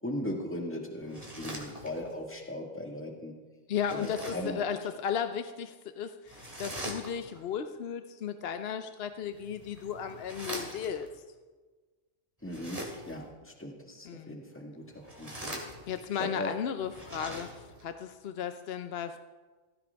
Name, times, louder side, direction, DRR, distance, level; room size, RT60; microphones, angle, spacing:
voice 1, 0.0-3.3 3.9-4.6 12.4-14.8 15.2-15.5 15.8-15.9 16.2-16.5, left 1 dB, 10° left, 1 dB, 1.7 m, -38 dB
sound 1, 1.0-2.2 3.7-4.6 6.3-7.4 9.2-11.1 12.4-13.3 14.9-16.2 16.8-17.9, right 1 dB, 30° right, 2.6 m, -43 dB
voice 2, 3.7-11.1 14.1-14.4 15.9-19.2, left 8 dB, 60° left, 9 dB, 0.8 m, -35 dB
17.5 x 15.5 x 3.5 m, 1.3 s
omnidirectional pair, 1.3 m